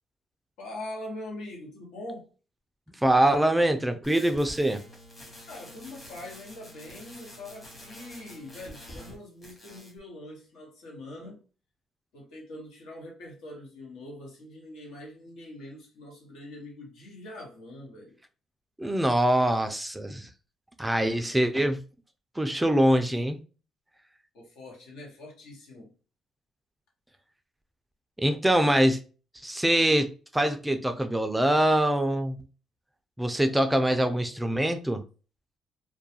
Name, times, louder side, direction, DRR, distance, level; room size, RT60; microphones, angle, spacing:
voice 1, 0.6-2.3 5.5-11.4 12.1-18.2 24.3-25.9, left 1 dB, 85° left, 1.0 m, -43 dB
voice 2, 3.0-4.8 18.8-20.3 20.8-21.8 22.4-23.4 28.2-29.0 29.4-32.4 33.2-35.0, right 1 dB, 10° right, 0.3 m, -24 dB
sound 1, 4.0-9.2 9.4-10.0, equal, 30° left, 0.9 m, -47 dB
2.3 x 2.2 x 2.7 m
cardioid pair, 95°, 0 cm